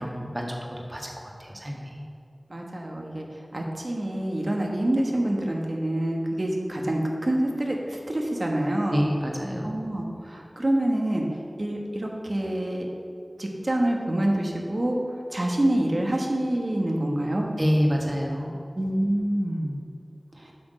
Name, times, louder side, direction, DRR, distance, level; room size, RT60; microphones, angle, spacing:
voice 1, 0.0-2.0 8.9-9.8 17.6-18.6, equal, 35° right, -1 dB, 1.5 m, -28 dB
voice 2, 2.5-3.3 3.5-9.1 9.6-11.2 11.6-12.9 13.4-15.0 15.3-17.5 18.7-19.7 20.4-20.5, right 1 dB, 60° right, 0 dB, 1.4 m, -26 dB
8.4 x 6.1 x 5.1 m, 2.5 s
wide cardioid pair, 40°, 0 cm